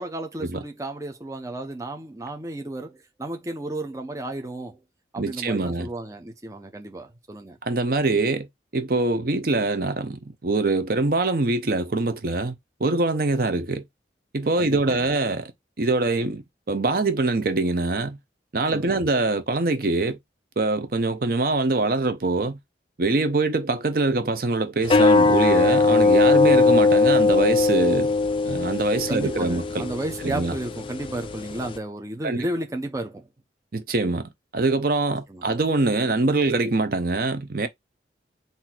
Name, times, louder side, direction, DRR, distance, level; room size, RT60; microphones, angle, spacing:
voice 1, 0.0-4.8 5.1-7.6 14.6-15.1 18.7-19.0 29.1-33.3 35.3-35.5, right 1 dB, 15° right, 0.7 m, -33 dB
voice 2, 5.2-5.9 7.6-8.5 8.7-12.5 12.8-13.8 14.3-15.5 15.8-16.4 16.7-18.2 18.5-20.2 20.6-22.6 23.0-28.1 28.5-29.9 30.2-30.5 32.2-32.4 33.7-37.7, right 3 dB, 50° right, 0.7 m, -24 dB
sound 1, 24.8-31.8, left 3 dB, 30° left, 0.3 m, -20 dB
4.1 x 2.7 x 4.3 m
head